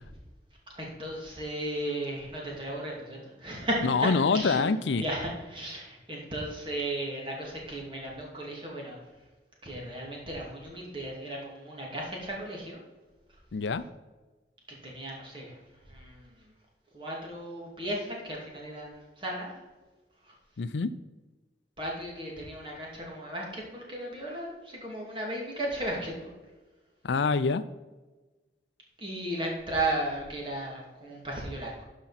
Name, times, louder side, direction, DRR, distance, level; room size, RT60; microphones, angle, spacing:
voice 1, 0.7-4.7 4.9-9.0 9.6-12.8 14.7-15.6 15.9-16.5 16.9-19.6 20.3-20.4 21.8-26.3 29.0-31.8, right 1 dB, 30° right, -2 dB, 2.4 m, -35 dB
voice 2, 3.8-5.0 13.5-13.8 20.6-21.0 27.0-27.6, left 4 dB, 85° left, 14 dB, 0.5 m, -26 dB
12.0 x 5.3 x 4.2 m, 1.2 s
head